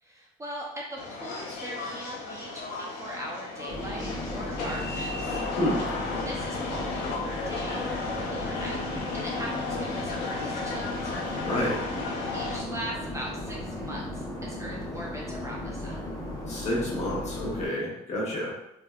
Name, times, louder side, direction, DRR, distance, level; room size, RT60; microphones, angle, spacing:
voice 1, 0.0-5.4 6.2-8.8 9.1-11.1 12.3-15.9, equal, 15° right, -3 dB, 0.5 m, -40 dB
sound 1, 1.0-12.6, left 3 dB, 85° left, 0.7 m, -34 dB
sound 2, 3.7-17.7, left 1 dB, 20° left, 1.0 m, -36 dB
voice 2, 11.4-11.8 16.5-18.5, left 1 dB, 40° left, -5 dB, 1.2 m, -29 dB
3.3 x 2.6 x 2.3 m, 0.81 s
cardioid pair, 110°, 17 cm